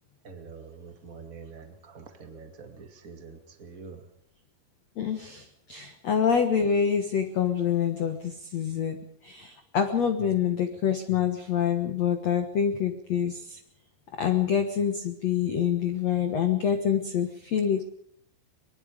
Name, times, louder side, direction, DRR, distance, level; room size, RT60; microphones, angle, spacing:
voice 1, 0.2-4.0 10.2-10.3, right 5 dB, 80° right, 5 dB, 0.7 m, -45 dB
voice 2, 5.0-9.0 9.2-13.6 14.2-17.9, left 8 dB, 85° left, 6 dB, 1.4 m, -26 dB
24.5 x 21.0 x 5.1 m, 0.64 s
omnidirectional pair, 5.3 m